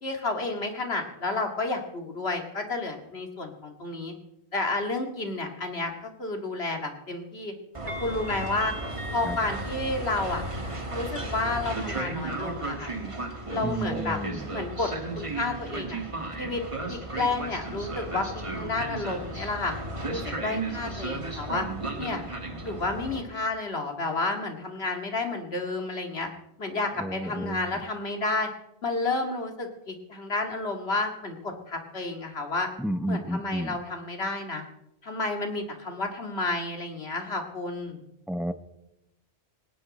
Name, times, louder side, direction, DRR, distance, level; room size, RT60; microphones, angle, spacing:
voice 1, 0.0-4.1 4.5-7.5 8.0-8.7 9.1-10.4 10.9-12.9 13.5-14.2 14.5-16.0 16.4-16.6 16.9-19.7 20.1-21.7 22.0-22.2 22.6-26.3 26.6-28.5 28.8-32.7 33.1-34.6 35.0-38.0, left 2 dB, 70° left, 4 dB, 2.5 m, -31 dB
Train, 7.7-23.2, right 2 dB, 30° right, 1.7 m, -34 dB
voice 2, 13.6-14.4 27.0-27.8 32.8-33.7 38.3-38.5, right 1 dB, ahead, 11 dB, 0.7 m, -31 dB
19.0 x 17.5 x 4.2 m, 0.87 s
omnidirectional pair, 1.1 m